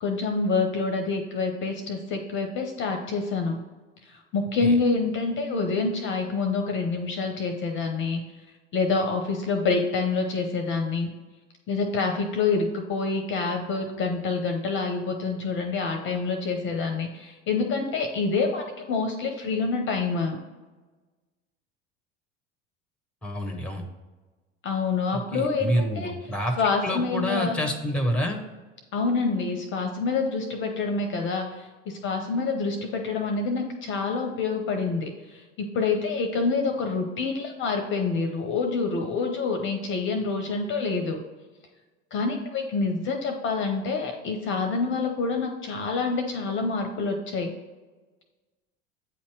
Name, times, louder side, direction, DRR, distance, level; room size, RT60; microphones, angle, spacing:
voice 1, 0.0-3.6 4.0-8.2 8.7-11.1 11.7-20.4 24.6-26.1 26.6-27.6 28.9-41.2 42.1-47.5, left 4 dB, 35° left, 4 dB, 0.7 m, -27 dB
voice 2, 23.2-23.8 25.1-26.5 26.8-28.4, equal, 5° left, 5 dB, 0.9 m, -28 dB
8.3 x 2.8 x 4.6 m, 1.3 s
figure-of-eight pair, 75°, 36 cm